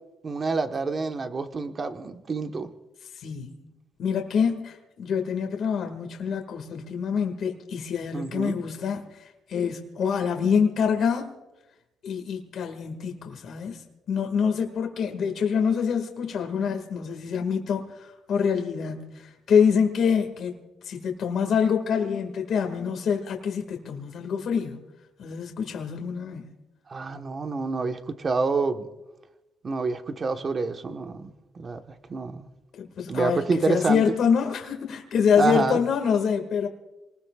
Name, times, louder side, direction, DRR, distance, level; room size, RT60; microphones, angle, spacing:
voice 1, 0.2-2.7 8.1-8.6 26.9-28.9 29.6-31.8 32.1-32.5 33.1-34.0 35.4-35.8, right 4 dB, 40° right, 1.3 m, -27 dB
voice 2, 3.1-3.6 4.0-11.3 12.0-20.6 20.8-24.8 25.2-26.5 32.8-36.7, left 7 dB, 65° left, 2.1 m, -26 dB
27.5 x 20.0 x 2.5 m
cardioid pair, 90°, 0 cm